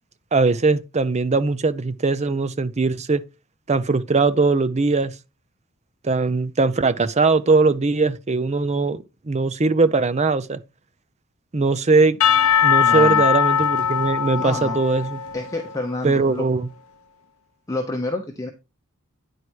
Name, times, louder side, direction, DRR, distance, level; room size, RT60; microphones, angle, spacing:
voice 1, 0.3-3.2 3.7-5.1 6.0-10.6 11.5-12.2 12.6-15.2 16.0-16.7, right 3 dB, 30° right, 0.6 m, -20 dB
Percussion / Church bell, 12.2-16.2, left 8 dB, 80° left, 0.7 m, -20 dB
voice 2, 12.8-13.3 14.4-14.8 15.3-16.5 17.7-18.5, left 2 dB, 15° left, 1.0 m, -28 dB
9.8 x 4.8 x 4.6 m
head